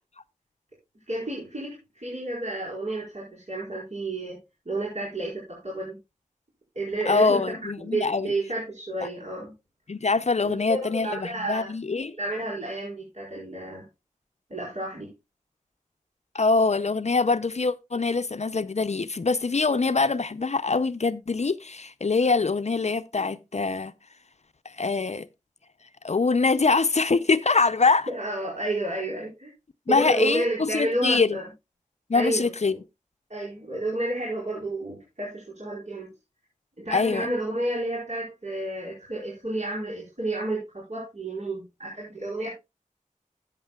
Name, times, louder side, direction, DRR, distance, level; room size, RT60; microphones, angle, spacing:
voice 1, 1.1-4.4 4.6-6.0 6.7-9.5 10.4-11.7 12.1-13.8 14.5-15.1 28.1-29.5 29.9-31.5 32.1-32.8 33.3-36.1 36.8-42.5, right 1 dB, 55° right, 4.8 m, -31 dB
voice 2, 7.1-8.3 9.0-9.1 9.9-12.1 16.3-23.9 24.7-25.3 26.0-28.1 29.9-31.4 32.1-32.7 36.9-37.3, left 4 dB, 55° left, 0.5 m, -24 dB
13.0 x 8.8 x 2.3 m
wide cardioid pair, 55°, 14 cm